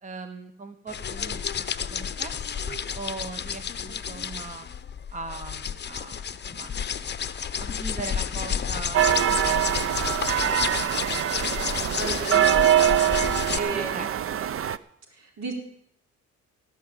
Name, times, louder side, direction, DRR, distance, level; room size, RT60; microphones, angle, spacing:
voice 1, 0.0-4.7 5.1-6.7 7.6-10.0 10.3-11.3 11.8-12.2 13.5-14.4, right 3 dB, 25° right, 8 dB, 1.0 m, -40 dB
sound 1, 0.9-13.6, left 7 dB, 35° left, 0.7 m, -31 dB
sound 2, 8.9-14.8, right 11 dB, 45° right, 0.6 m, -23 dB
voice 2, 12.0-13.2 13.6-14.0 15.2-15.6, right 3 dB, 65° right, 2 dB, 4.1 m, -32 dB
17.5 x 6.0 x 8.9 m, 0.72 s
cardioid pair, 90°, 30 cm